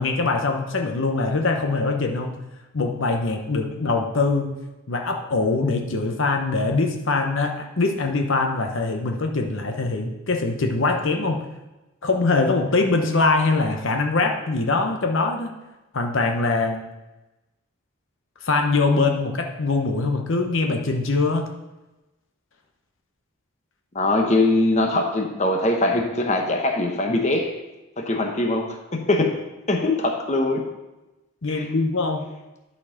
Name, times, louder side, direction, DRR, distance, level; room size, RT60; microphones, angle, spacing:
voice 1, 0.0-2.4 2.7-4.6 4.9-11.4 12.0-15.5 15.9-16.8 18.4-21.5 31.4-32.3, left 3 dB, 60° left, 4 dB, 0.9 m, -23 dB
voice 2, 23.9-27.6 28.0-29.4 29.7-30.6 31.5-31.7, left 2 dB, 30° left, 2 dB, 0.9 m, -22 dB
11.5 x 4.4 x 5.7 m, 1.0 s
head